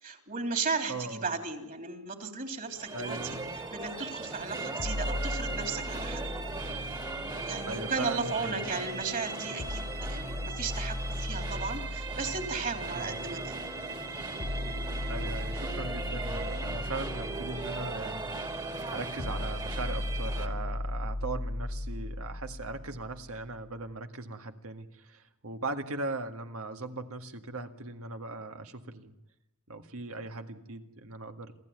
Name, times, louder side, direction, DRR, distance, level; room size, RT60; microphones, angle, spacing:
voice 1, 0.0-6.2 7.4-13.5, right 4 dB, 40° right, 5 dB, 3.2 m, -35 dB
voice 2, 0.9-1.3 2.9-3.4 7.7-8.7 12.9-13.3 15.1-29.1 29.7-31.5, right 3 dB, 70° right, 6 dB, 1.9 m, -39 dB
sound 1, 2.7-20.5, right 3 dB, 20° right, 2.2 m, -38 dB
sound 2, 4.8-8.8 9.6-23.6, left 1 dB, 40° left, 0.8 m, -37 dB
27.5 x 15.0 x 9.5 m, 0.95 s
head